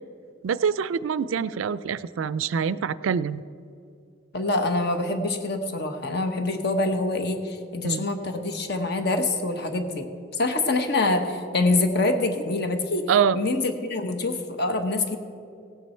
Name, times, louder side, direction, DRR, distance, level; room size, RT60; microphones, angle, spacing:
voice 1, 0.4-3.4 7.8-8.1 13.1-13.4, right 7 dB, 80° right, 17 dB, 0.4 m, -25 dB
voice 2, 4.3-13.1 13.3-15.2, left 2 dB, 55° left, 6 dB, 1.1 m, -25 dB
16.5 x 9.3 x 4.4 m, 2.4 s
head